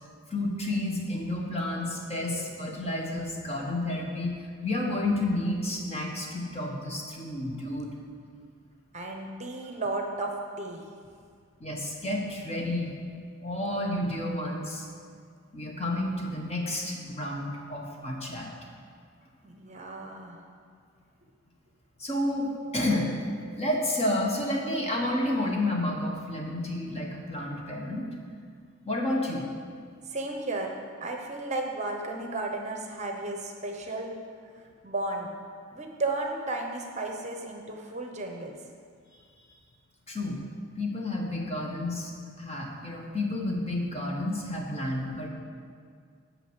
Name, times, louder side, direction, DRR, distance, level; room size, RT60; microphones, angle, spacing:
voice 1, 0.3-8.0 11.6-12.9 13.4-14.8 15.5-18.5 22.0-22.5 22.7-23.1 23.6-28.0 28.8-29.5 40.1-40.4 40.8-42.1 42.4-45.3, left 1 dB, 30° left, -1 dB, 1.4 m, -30 dB
voice 2, 8.9-10.8 19.4-20.5 30.1-30.7 31.0-34.2 34.6-35.3 35.7-38.6, right 2 dB, 35° right, 3 dB, 0.8 m, -34 dB
9.0 x 5.9 x 8.1 m, 2.1 s
head